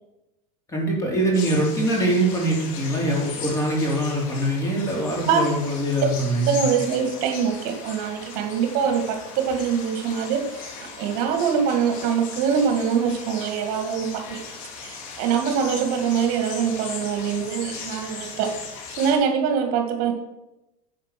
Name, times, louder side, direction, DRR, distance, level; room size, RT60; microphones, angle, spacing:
voice 1, 0.7-6.6, right 1 dB, 15° left, -1 dB, 3.6 m, -23 dB
sound 1, 1.3-19.1, left 5 dB, 70° left, 2.9 m, -38 dB
voice 2, 6.5-14.4 14.8-18.5 19.0-20.1, right 7 dB, 55° right, 4 dB, 2.0 m, -24 dB
10.5 x 7.6 x 6.0 m, 0.95 s
supercardioid pair, 145°, 18 cm